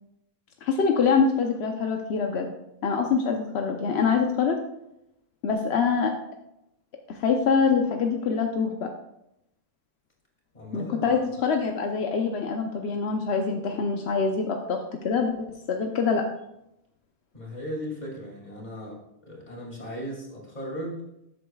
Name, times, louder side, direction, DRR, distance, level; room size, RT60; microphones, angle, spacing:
voice 1, 0.6-2.5 2.8-4.6 5.4-6.1 7.1-8.9 10.7-14.8 15.0-16.2, left 5 dB, 85° left, 3 dB, 1.0 m, -25 dB
voice 2, 10.5-11.1 17.3-21.0, equal, 45° left, -2 dB, 2.6 m, -37 dB
12.5 x 7.7 x 2.3 m, 0.83 s
omnidirectional pair, 1.1 m